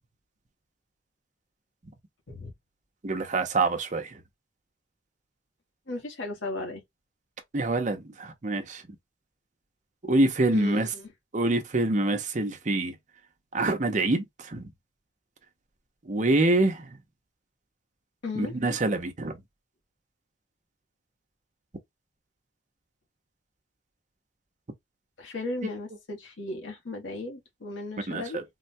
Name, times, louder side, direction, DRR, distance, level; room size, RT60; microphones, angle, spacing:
voice 1, 3.0-4.1 7.5-8.8 10.1-10.9 11.3-13.0 13.5-14.7 16.1-17.0 18.4-19.3 28.1-28.4, right 2 dB, 40° right, 0.7 m, -26 dB
voice 2, 5.9-6.8 10.5-11.1 18.2-18.5 25.2-28.4, left 2 dB, 85° left, 1.2 m, -36 dB
3.7 x 2.2 x 2.6 m
head